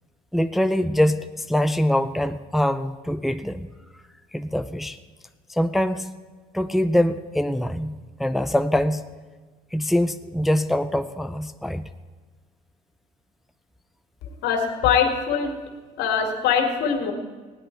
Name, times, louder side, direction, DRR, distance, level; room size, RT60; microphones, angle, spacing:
voice 1, 0.3-3.6 4.3-5.0 5.5-6.1 6.5-9.1 9.7-11.9, left 1 dB, ahead, 9 dB, 0.4 m, -23 dB
voice 2, 14.4-15.5 16.0-17.1, left 7 dB, 85° left, 3 dB, 2.2 m, -22 dB
16.5 x 10.5 x 4.5 m, 1.4 s
cardioid pair, 110°, 17 cm